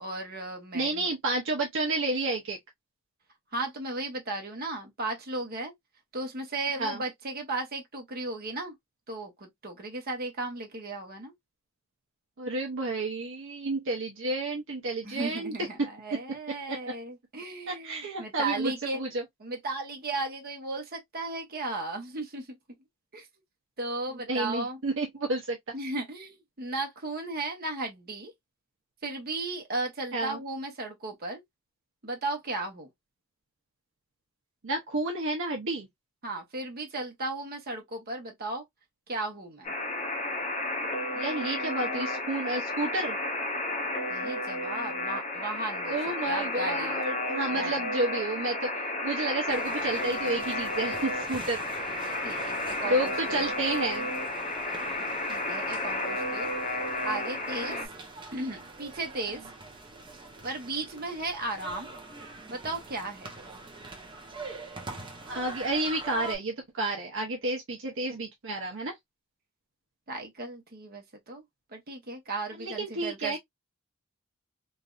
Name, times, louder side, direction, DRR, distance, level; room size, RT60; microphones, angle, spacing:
voice 1, 0.0-1.1 3.5-5.7 6.1-8.7 9.1-11.3 15.0-19.0 19.4-22.6 23.1-23.3 23.8-24.8 25.7-28.3 29.0-31.4 32.0-32.9 36.2-38.6 39.1-39.7 44.1-46.0 46.3-47.0 47.5-47.8 52.2-53.5 55.3-56.6 57.0-57.9 58.3-59.5 60.4-61.9 62.5-63.3 70.1-71.4 71.7-73.4, right 2 dB, 45° right, 1.1 m, -35 dB
voice 2, 0.7-2.6 6.8-7.0 12.4-15.5 15.8-15.9 16.7-16.8 17.7-19.2 24.3-25.7 30.1-30.4 34.6-35.9 41.1-43.2 45.9-48.7 49.0-51.6 52.8-54.1 57.6-57.9 65.3-68.9 72.6-73.4, right 2 dB, 65° right, 0.7 m, -31 dB
Alarm, 39.6-57.9, left 2 dB, 35° left, 0.7 m, -32 dB
sound 1, 49.5-66.4, right 2 dB, 25° right, 0.8 m, -44 dB
3.2 x 2.6 x 2.4 m
head